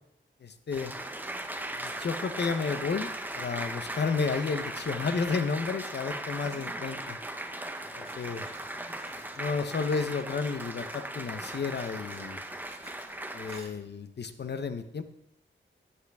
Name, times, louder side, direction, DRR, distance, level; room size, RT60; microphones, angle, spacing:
voice 1, 0.4-0.9 1.7-7.2 8.0-8.5 9.4-12.4 13.3-15.0, left 5 dB, 55° left, 9 dB, 0.8 m, -32 dB
Applause, 0.7-13.6, right 1 dB, 10° right, 0.7 m, -38 dB
sound 1, 7.8-11.1 11.5-13.2 13.5-13.8, right 2 dB, 30° right, 1.6 m, -53 dB
15.0 x 8.5 x 3.5 m, 0.77 s
wide cardioid pair, 165°, 20 cm